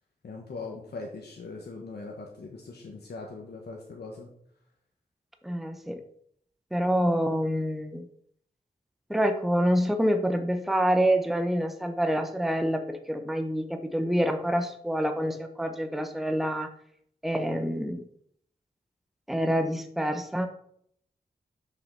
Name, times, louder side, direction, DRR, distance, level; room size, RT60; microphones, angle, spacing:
voice 1, 0.2-4.3, left 3 dB, 80° left, 0 dB, 1.4 m, -40 dB
voice 2, 5.4-6.0 6.7-8.1 9.1-16.7 17.2-18.0 19.3-20.5, equal, ahead, 7 dB, 0.9 m, -27 dB
6.7 x 5.8 x 5.6 m, 0.67 s
wide cardioid pair, 80°, 17 cm